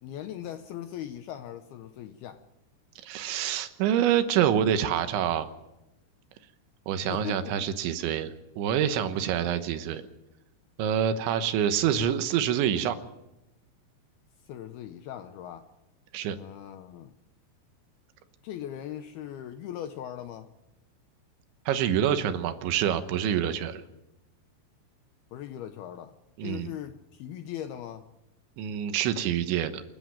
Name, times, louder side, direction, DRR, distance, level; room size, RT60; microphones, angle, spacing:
voice 1, 0.0-2.4 7.1-7.7 14.5-15.7 16.3-17.1 18.4-20.5 25.3-28.1, left 10 dB, 80° left, 2.3 m, -39 dB
voice 2, 3.0-5.5 6.9-10.0 10.8-13.0 16.1-16.4 21.7-23.8 26.4-26.7 28.6-29.8, right 9 dB, 80° right, 3.5 m, -26 dB
28.0 x 11.0 x 9.2 m
omnidirectional pair, 5.3 m